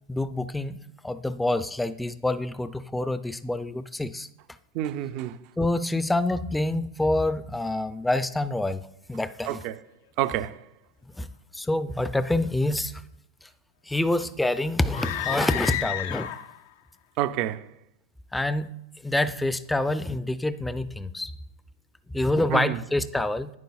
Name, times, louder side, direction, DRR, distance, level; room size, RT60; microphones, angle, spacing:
voice 1, 0.1-4.3 5.6-8.8 9.1-9.6 11.2-11.3 11.5-12.9 13.9-16.3 18.3-18.7 19.0-21.3 22.1-23.5, left 2 dB, 5° left, 0.4 m, -26 dB
voice 2, 4.7-5.4 9.5-9.8 10.2-10.6 17.2-17.6 22.5-22.8, right 12 dB, 50° right, 0.4 m, -28 dB
sound 1, 14.9-16.7, left 12 dB, 65° left, 0.5 m, -31 dB
10.5 x 9.1 x 2.3 m
hypercardioid pair, 100°, 0 cm